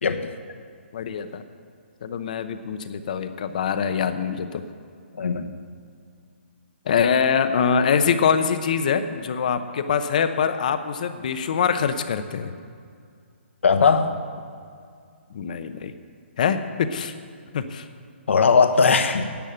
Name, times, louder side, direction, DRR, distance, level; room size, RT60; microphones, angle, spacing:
voice 1, 0.9-1.4 2.0-4.6 6.9-12.5 15.3-15.9 16.4-17.1 17.5-17.9, left 6 dB, 40° left, 10 dB, 0.7 m, -24 dB
voice 2, 13.6-14.2 18.3-19.2, left 5 dB, 75° left, 7 dB, 1.2 m, -18 dB
10.5 x 8.3 x 8.7 m, 2.2 s
hypercardioid pair, 170°, 7 cm